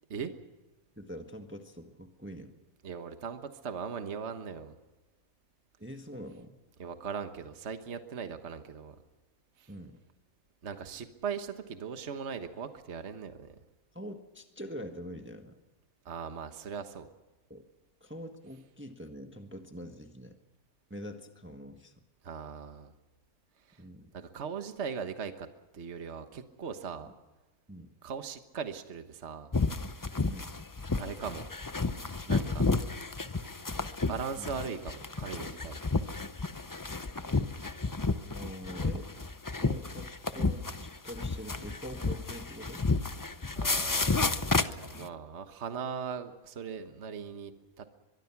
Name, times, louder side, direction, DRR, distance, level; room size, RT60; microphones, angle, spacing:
voice 1, 1.0-2.5 5.8-6.6 9.7-10.0 13.9-15.6 17.5-17.7 18.0-20.3 20.9-21.9 23.8-24.1 27.0-27.1 27.7-27.9 30.2-30.6 34.4-34.5 38.3-39.1 39.6-42.9, equal, 10° right, 5 dB, 1.5 m, -44 dB
voice 2, 2.8-4.7 6.8-8.9 9.6-9.7 10.6-13.5 16.0-17.1 22.2-22.9 23.7-23.8 24.1-25.5 25.7-27.1 28.0-29.5 30.9-31.5 32.3-32.7 34.0-35.8 43.5-47.5 47.8-47.9, right 6 dB, 50° right, 8 dB, 1.5 m, -39 dB
Woods - walking running pantning and falling, 29.5-45.1, left 3 dB, 25° left, 0.4 m, -31 dB
23.5 x 22.5 x 6.0 m, 1.1 s
omnidirectional pair, 1.5 m